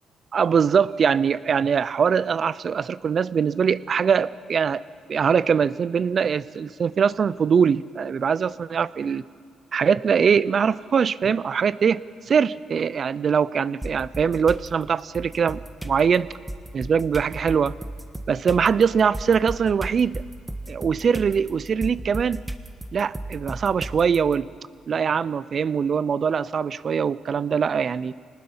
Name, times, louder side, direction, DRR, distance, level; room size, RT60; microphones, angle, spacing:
voice 1, 0.3-4.8 5.1-9.2 9.7-16.3 16.7-17.7 18.3-20.2 20.7-22.4 22.9-24.5 24.9-28.1, right 6 dB, 50° right, 19 dB, 0.5 m, -22 dB
sound 1, 13.8-14.7 15.1-24.3, right 1 dB, 15° right, 1.4 m, -35 dB
26.0 x 19.5 x 5.6 m, 2.2 s
cardioid pair, 90°, 0 cm